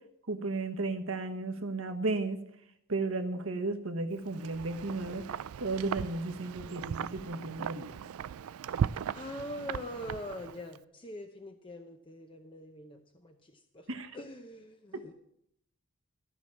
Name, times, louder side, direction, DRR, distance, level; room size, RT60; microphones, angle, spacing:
voice 1, 0.3-2.4 2.9-5.2 5.6-7.9 13.9-14.1, right 3 dB, 75° right, 6 dB, 1.3 m, -34 dB
Wind, 4.3-10.8, right 7 dB, 90° right, 0.4 m, -37 dB
voice 2, 9.1-13.9 14.1-15.1, left 1 dB, 25° left, 5 dB, 0.7 m, -43 dB
14.5 x 6.2 x 7.3 m, 0.75 s
head